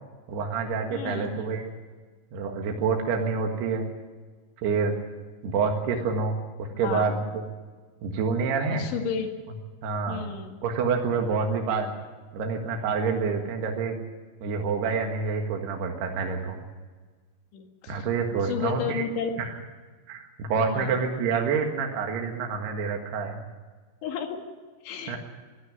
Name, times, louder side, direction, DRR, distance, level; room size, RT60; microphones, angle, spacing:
voice 1, 0.3-1.7 2.3-3.9 4.6-4.9 5.4-7.4 8.0-8.9 9.8-10.3 10.6-11.9 12.3-14.0 14.4-16.6 17.9-19.0 19.4-19.5 20.1-23.4 25.1-25.2, right 5 dB, 60° right, 2 dB, 3.3 m, -27 dB
voice 2, 0.9-1.5 6.7-7.2 8.7-9.3 10.1-10.5 17.5-18.1 18.4-19.3 20.6-20.9 24.0-24.4 24.8-25.2, left 7 dB, 70° left, 3 dB, 4.4 m, -32 dB
23.5 x 13.0 x 9.4 m, 1.4 s
omnidirectional pair, 5.9 m